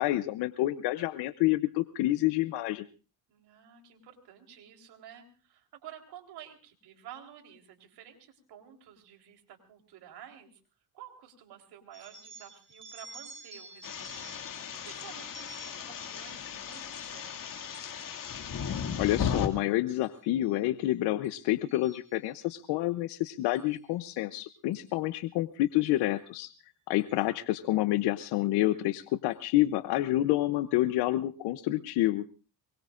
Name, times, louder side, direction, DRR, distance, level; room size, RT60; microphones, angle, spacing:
voice 1, 0.0-2.9 19.0-26.5 26.9-32.2, left 16 dB, 80° left, 12 dB, 0.8 m, -28 dB
voice 2, 3.3-10.6 10.9-17.9 27.1-27.3, right 9 dB, 75° right, 3 dB, 3.9 m, -51 dB
sound 1, 11.9-19.2 19.7-20.1 20.4-20.8 21.2-22.6 23.5-23.8 24.7-24.9 25.9-26.0 26.3-26.4 27.0-27.2, right 3 dB, 30° right, 3.0 m, -52 dB
sound 2, 13.8-19.5, left 8 dB, 55° left, 2.3 m, -36 dB
24.0 x 21.5 x 2.5 m, 0.36 s
cardioid pair, 85°, 39 cm